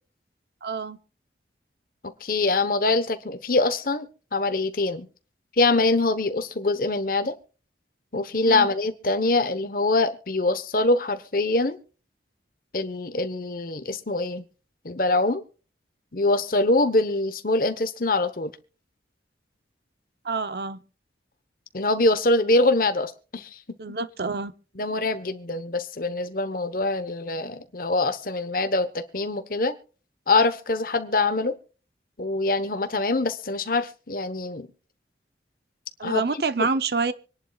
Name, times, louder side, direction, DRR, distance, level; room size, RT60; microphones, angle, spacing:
voice 1, 0.6-1.0 8.5-8.7 20.2-20.8 23.8-24.5 36.0-37.1, right 4 dB, 65° right, 0.8 m, -27 dB
voice 2, 2.0-5.1 5.6-7.4 8.1-11.8 12.7-14.4 14.8-15.4 16.1-18.5 21.7-23.8 24.7-29.7 30.3-31.5 32.2-34.7 36.0-36.7, left 2 dB, 50° left, 1.1 m, -24 dB
25.5 x 11.0 x 2.4 m
head